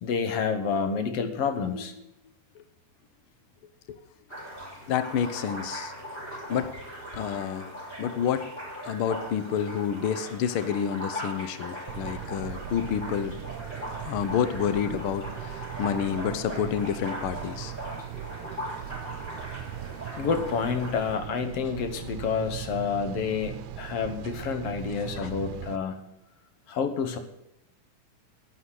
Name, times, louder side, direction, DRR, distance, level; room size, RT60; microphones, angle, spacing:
voice 1, 0.0-1.9 7.2-7.3 20.2-26.0 26.7-27.2, left 6 dB, 60° left, 9 dB, 2.0 m, -29 dB
sound 1, 4.3-21.2, equal, 15° left, 5.5 m, -39 dB
voice 2, 4.9-5.9 6.5-6.7 7.1-7.7 8.0-8.5 8.8-13.3 14.0-17.7 25.2-25.3, left 8 dB, 85° left, 12 dB, 1.2 m, -29 dB
sound 2, 11.9-25.8, right 12 dB, 80° right, 1.9 m, -39 dB
11.5 x 10.0 x 6.4 m, 0.84 s
omnidirectional pair, 3.5 m